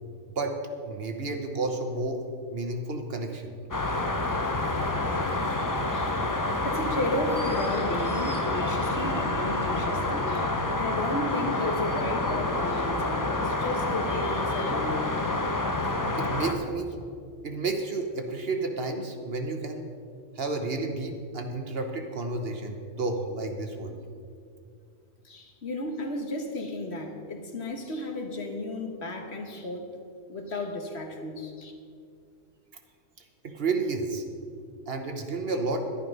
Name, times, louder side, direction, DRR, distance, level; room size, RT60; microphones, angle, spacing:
voice 1, 0.8-2.2 2.5-3.5 16.2-16.9 17.4-19.9 20.3-24.0 33.2-34.2 34.9-35.8, right 3 dB, 50° right, 4 dB, 1.2 m, -31 dB
sound 1, 3.7-16.5, left 2 dB, 20° left, 0.6 m, -28 dB
voice 2, 6.6-15.0 25.2-29.9 30.3-31.7, left 1 dB, 55° left, 3 dB, 1.5 m, -33 dB
11.5 x 11.0 x 5.4 m, 2.3 s
omnidirectional pair, 1.3 m